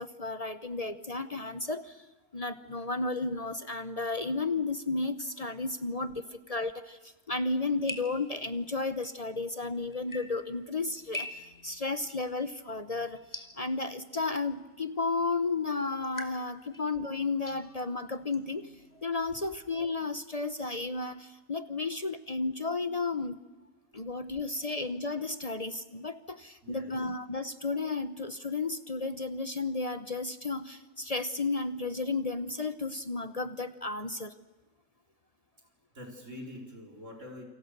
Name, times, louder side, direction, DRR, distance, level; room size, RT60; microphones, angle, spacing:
voice 1, 0.0-2.1 2.3-23.4 23.9-34.3, left 3 dB, 35° left, 12 dB, 0.9 m, -33 dB
sound 1, 7.5-19.1, left 1 dB, 15° left, 2.1 m, -47 dB
voice 2, 26.6-26.9 35.9-37.4, left 1 dB, 80° right, 2 dB, 5.0 m, -45 dB
28.5 x 27.0 x 6.7 m, 1.2 s
omnidirectional pair, 1.3 m